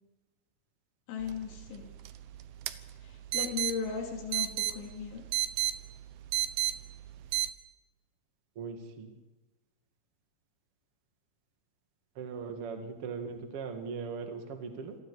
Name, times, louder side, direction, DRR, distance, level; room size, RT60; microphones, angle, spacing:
voice 1, 1.1-1.9 3.0-5.2, left 7 dB, 75° left, 1 dB, 5.3 m, -37 dB
sound 1, 1.2-7.5, right 14 dB, 90° right, 2.1 m, -35 dB
voice 2, 8.6-9.2 12.2-15.0, right 5 dB, 45° right, 5 dB, 1.9 m, -39 dB
27.0 x 20.0 x 5.0 m, 1.1 s
omnidirectional pair, 5.6 m